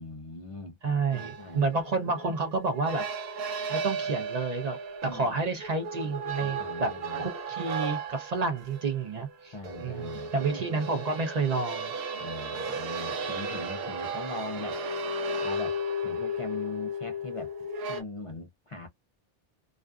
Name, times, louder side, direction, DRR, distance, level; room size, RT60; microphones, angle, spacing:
voice 1, 0.0-0.8 1.1-1.6 5.0-5.3 6.4-7.3 9.5-10.3 12.2-14.8 15.4-17.5 17.9-18.9, left 2 dB, 50° left, 0.4 m, -41 dB
voice 2, 0.8-3.0 3.7-4.8 5.0-6.9 7.2-9.5 9.8-11.9, right 3 dB, 50° right, 0.6 m, -30 dB
sound 1, 1.1-18.0, right 1 dB, 75° right, 0.9 m, -35 dB
2.4 x 2.3 x 2.2 m
omnidirectional pair, 1.0 m